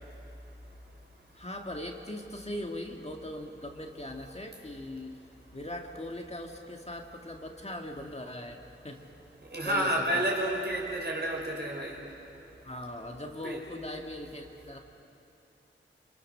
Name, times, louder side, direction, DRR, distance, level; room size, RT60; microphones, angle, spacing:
voice 1, 1.3-5.2 5.5-9.0 9.6-10.2 12.6-14.8, left 1 dB, 30° left, 1 dB, 2.0 m, -40 dB
voice 2, 9.5-12.0 13.4-13.6, right 1 dB, 55° right, -2 dB, 5.6 m, -30 dB
29.0 x 24.5 x 6.7 m, 3.0 s
wide cardioid pair, 80°, 21 cm